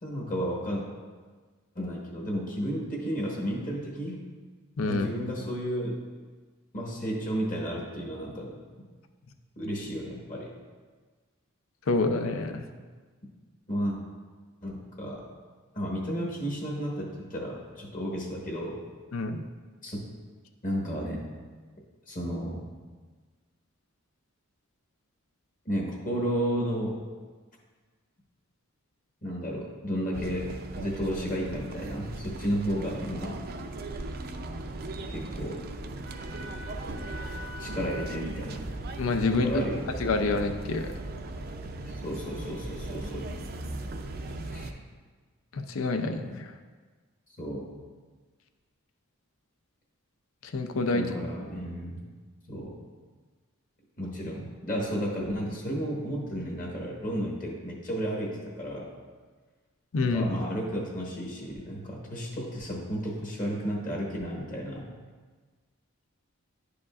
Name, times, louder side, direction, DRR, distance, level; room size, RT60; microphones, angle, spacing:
voice 1, 0.0-0.8 1.7-4.2 4.9-6.0 6.7-8.5 9.6-10.5 13.7-14.0 14.6-15.3 15.7-18.8 19.8-20.0 20.6-21.2 22.1-22.6 25.6-27.0 29.2-33.4 35.1-35.6 37.6-38.6 39.3-39.8 41.8-43.3 44.5-44.7 47.4-47.7 50.9-52.0 52.5-52.7 54.0-58.9 60.0-64.8, equal, 40° left, -2 dB, 1.3 m, -32 dB
voice 2, 4.8-5.1 11.9-12.6 19.1-19.4 39.0-39.6 40.0-40.9 45.5-46.5 50.5-51.0 59.9-60.3, left 3 dB, 70° left, 7 dB, 0.5 m, -27 dB
sound 1, 30.1-44.7, right 2 dB, 45° right, 0.4 m, -38 dB
10.5 x 5.0 x 2.4 m, 1.4 s
head